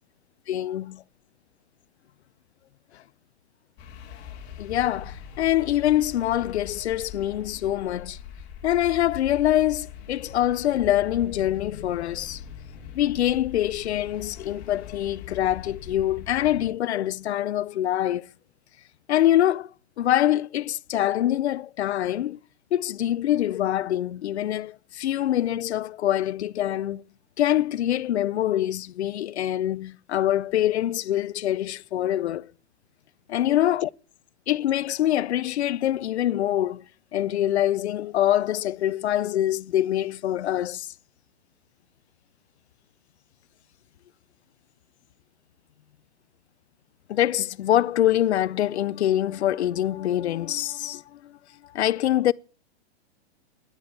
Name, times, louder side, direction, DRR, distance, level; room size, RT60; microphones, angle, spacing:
voice 1, 0.5-1.0 2.9-3.0 4.6-8.2 8.6-12.4 12.9-18.3 19.1-19.7 20.0-22.4 22.7-27.0 27.4-32.5 33.3-33.9 34.5-36.9 37.1-40.9 47.1-51.4 51.6-52.3, left 12 dB, 80° left, 0.6 m, -24 dB
sound 1, 3.8-16.7, left 8 dB, 30° left, 2.7 m, -41 dB
10.5 x 9.7 x 8.7 m
hypercardioid pair, 145°, 33 cm